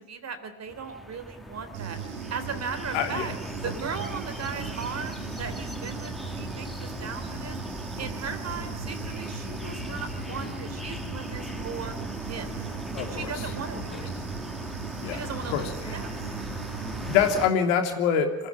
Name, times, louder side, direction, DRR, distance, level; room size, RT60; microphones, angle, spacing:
voice 1, 0.0-2.0 2.3-3.3 3.6-7.6 8.0-12.0 12.3-12.6 13.1-14.1 15.1-16.1, right 5 dB, 40° right, 9 dB, 3.8 m, -37 dB
sound 1, 0.7-17.5, left 1 dB, ahead, 2.6 m, -38 dB
Human voice / Buzz, 1.7-17.5, right 8 dB, 85° right, 1.6 m, -38 dB
voice 2, 2.9-3.3 12.9-13.3 13.9-14.0 15.0-15.2 15.5-15.7 17.0-18.5, left 7 dB, 70° left, 5 dB, 3.2 m, -25 dB
Bowed string instrument, 8.6-12.5, left 11 dB, 90° left, 4.7 m, -46 dB
25.5 x 15.5 x 9.9 m, 0.95 s
figure-of-eight pair, 60°, 41 cm